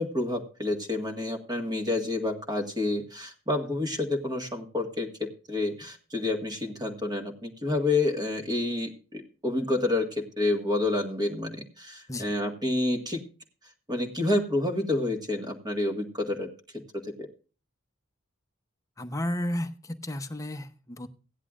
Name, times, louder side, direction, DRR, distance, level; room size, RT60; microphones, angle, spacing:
voice 1, 0.0-13.2 13.9-16.5 16.9-17.3, left 2 dB, 20° right, 4 dB, 1.7 m, -29 dB
voice 2, 19.0-21.1, left 1 dB, 15° left, 6 dB, 0.8 m, -33 dB
16.5 x 10.5 x 2.5 m, 0.36 s
head